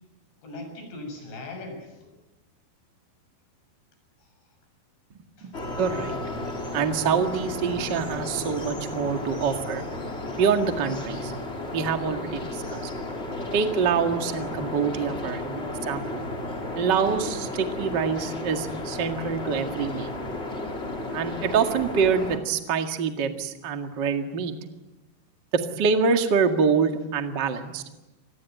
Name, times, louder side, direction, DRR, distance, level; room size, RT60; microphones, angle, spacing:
voice 1, 0.4-2.1 4.2-4.3 5.4-5.5 6.5-6.8 12.6-13.0, left 2 dB, 85° left, 4 dB, 9.1 m, -42 dB
voice 2, 5.4-6.2 6.7-9.8 10.4-11.3 11.7-12.8 13.5-16.2 16.7-20.1 21.1-24.5 25.5-27.8, right 6 dB, 45° right, 5 dB, 1.5 m, -25 dB
sound 1, 5.5-22.4, left 2 dB, 20° left, 2.4 m, -33 dB
27.0 x 21.0 x 9.3 m, 1.1 s
omnidirectional pair, 5.0 m